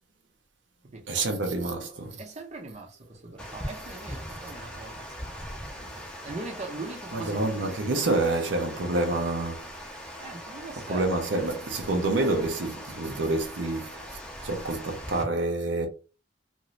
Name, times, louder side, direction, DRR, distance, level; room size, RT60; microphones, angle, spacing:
voice 1, 1.1-2.2 4.5-4.6 5.8-5.9 7.1-9.7 10.9-15.9, right 2 dB, 75° right, 0.6 m, -28 dB
voice 2, 2.2-5.4 6.2-8.1 10.2-11.2, right 2 dB, 40° right, 0.7 m, -41 dB
Water, 3.4-15.2, equal, 5° left, 0.7 m, -41 dB
2.6 x 2.5 x 3.0 m
head